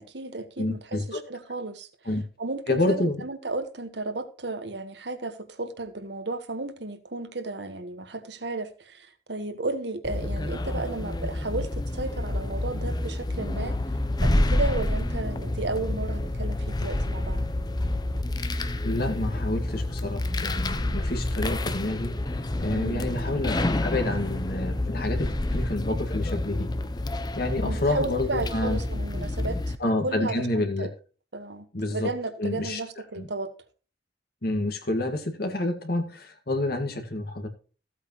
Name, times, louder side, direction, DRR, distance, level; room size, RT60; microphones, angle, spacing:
voice 1, 0.0-1.9 2.4-13.8 14.2-17.5 22.7-23.1 27.6-29.7 30.0-30.9 31.3-33.5, right 2 dB, 65° right, 1.5 m, -33 dB
voice 2, 0.6-1.2 2.1-2.2 2.7-3.2 18.8-22.1 22.6-26.7 27.4-28.8 29.8-30.9 31.7-32.1 32.4-32.8 33.2-33.3 34.4-37.5, left 2 dB, 55° left, 2.0 m, -28 dB
sound 1, 10.0-29.8, left 1 dB, 20° left, 0.7 m, -28 dB
15.0 x 8.4 x 3.1 m
head